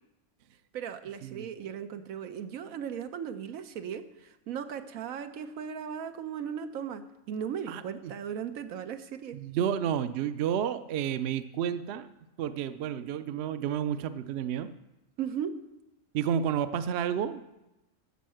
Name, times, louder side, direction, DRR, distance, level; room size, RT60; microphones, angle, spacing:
voice 1, 0.7-9.4 15.2-15.6, right 8 dB, 90° right, 9 dB, 1.2 m, -37 dB
voice 2, 7.7-8.1 9.3-12.1 12.4-14.7 16.1-17.4, right 9 dB, 60° right, 12 dB, 0.8 m, -31 dB
12.5 x 6.4 x 7.6 m, 0.96 s
omnidirectional pair, 1.4 m